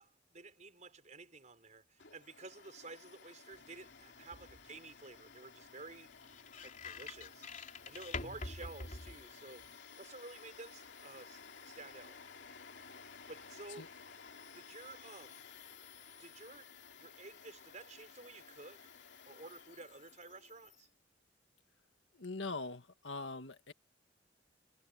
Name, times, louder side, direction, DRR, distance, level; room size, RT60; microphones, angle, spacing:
voice 1, 0.0-6.1 6.6-7.5 7.8-9.7 10.0-11.4 11.6-12.2 13.3-13.9 14.5-15.4 16.2-18.8 19.2-20.9, right 3 dB, 40° right, 5.0 m, -52 dB
Domestic sounds home sounds, 2.0-20.9, left 6 dB, 65° left, 3.1 m, -56 dB
sound 1, 3.5-9.8, left 3 dB, 45° left, 3.6 m, -48 dB
voice 2, 22.1-23.7, left 3 dB, 85° left, 1.7 m, -42 dB
head